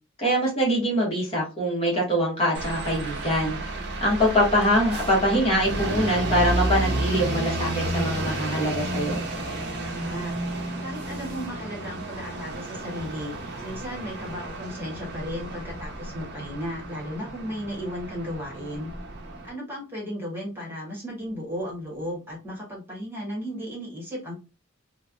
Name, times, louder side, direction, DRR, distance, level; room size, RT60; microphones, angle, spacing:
voice 1, 0.2-3.6 4.0-9.2, equal, 30° left, -3 dB, 1.2 m, -23 dB
sound 1, 2.5-19.5, right 1 dB, 55° right, 0.8 m, -31 dB
voice 2, 9.8-10.3 10.8-13.3 13.6-18.9 19.4-24.3, equal, 10° right, -4 dB, 1.2 m, -35 dB
3.1 x 2.2 x 2.4 m, 0.30 s
head